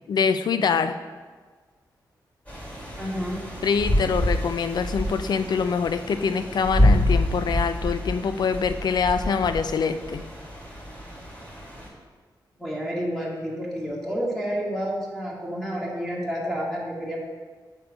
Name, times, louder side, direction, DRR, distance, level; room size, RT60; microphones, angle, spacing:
voice 1, 0.1-1.0 3.6-10.2, left 6 dB, 65° left, 11 dB, 0.4 m, -24 dB
sound 1, 2.5-11.9, left 1 dB, 20° left, 2.1 m, -27 dB
voice 2, 3.0-3.4 12.6-17.2, equal, 5° left, -4 dB, 1.7 m, -30 dB
6.5 x 3.6 x 6.0 m, 1.4 s
cardioid pair, 85°, 8 cm